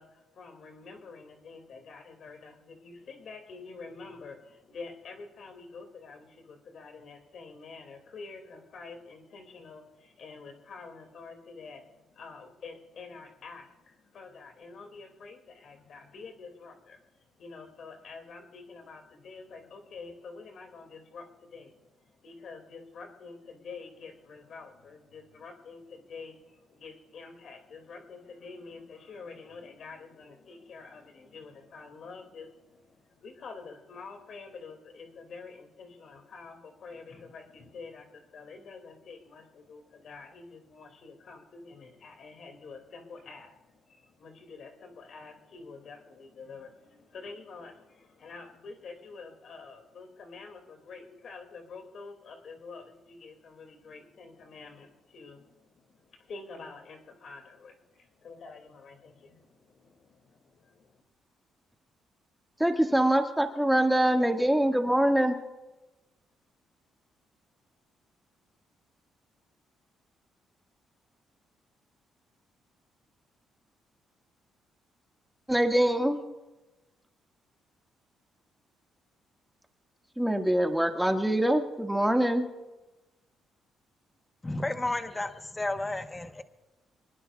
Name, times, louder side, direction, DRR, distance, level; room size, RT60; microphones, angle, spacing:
voice 1, 0.0-61.0, left 4 dB, 60° left, 4 dB, 2.5 m, -47 dB
voice 2, 62.6-65.4 75.5-76.2 80.2-82.5, right 1 dB, 5° right, 3 dB, 1.9 m, -24 dB
voice 3, 84.4-86.4, left 2 dB, 15° left, 7 dB, 1.1 m, -32 dB
26.0 x 20.5 x 2.4 m, 1.1 s
cardioid pair, 90°, 0 cm